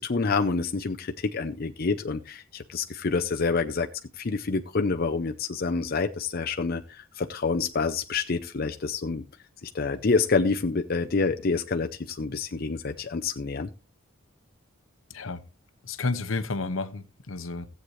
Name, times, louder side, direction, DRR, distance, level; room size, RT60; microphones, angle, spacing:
voice 1, 0.0-3.9 4.2-9.2 9.6-13.7, left 4 dB, 45° left, 0.6 m, -27 dB
voice 2, 15.8-17.7, left 3 dB, 75° left, 0.9 m, -31 dB
16.0 x 7.8 x 3.1 m
head